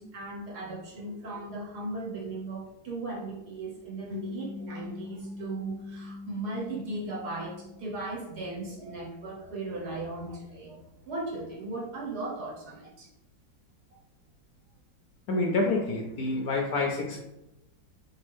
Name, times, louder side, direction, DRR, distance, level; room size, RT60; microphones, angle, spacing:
voice 1, 0.0-13.1, right 2 dB, 60° right, -4 dB, 1.6 m, -37 dB
sound 1, 4.1-8.7, left 3 dB, 35° right, 0.6 m, -42 dB
voice 2, 15.3-17.2, left 2 dB, 70° left, 0 dB, 0.9 m, -28 dB
4.3 x 3.4 x 3.4 m, 0.91 s
omnidirectional pair, 2.0 m